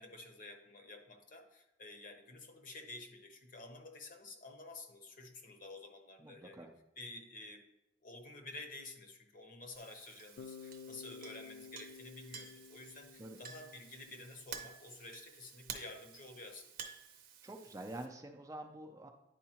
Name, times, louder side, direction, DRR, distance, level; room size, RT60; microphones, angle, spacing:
voice 1, 0.0-6.7 7.0-7.6 8.0-16.9, left 2 dB, 45° left, 4 dB, 0.8 m, -51 dB
voice 2, 6.2-6.7 13.2-13.4 17.4-19.1, right 1 dB, 20° right, 4 dB, 0.5 m, -47 dB
Chink clink, 9.7-18.1, right 7 dB, 50° right, 0.7 m, -52 dB
Bass guitar, 10.4-14.4, left 6 dB, 75° left, 0.3 m, -53 dB
10.0 x 4.6 x 2.9 m, 0.91 s
head